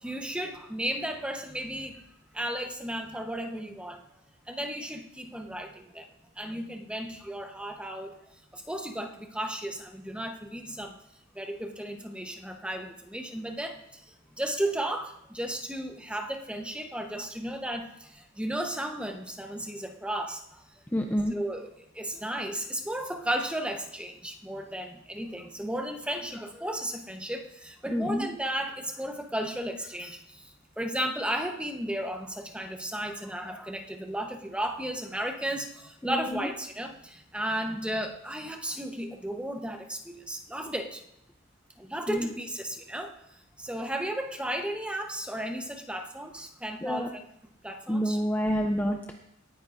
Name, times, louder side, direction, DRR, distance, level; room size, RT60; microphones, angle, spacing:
voice 1, 0.0-2.0 2.3-4.0 4.5-6.1 6.4-8.1 8.5-11.0 11.3-20.6 21.3-21.7 21.9-41.0 41.8-47.2 47.6-48.2, right 1 dB, 5° right, 4 dB, 1.0 m, -34 dB
voice 2, 20.9-21.4 27.9-28.3 36.0-36.5 42.1-42.3 46.8-47.1 47.9-49.1, equal, 10° left, 3 dB, 0.6 m, -28 dB
18.0 x 9.8 x 2.6 m, 0.80 s
head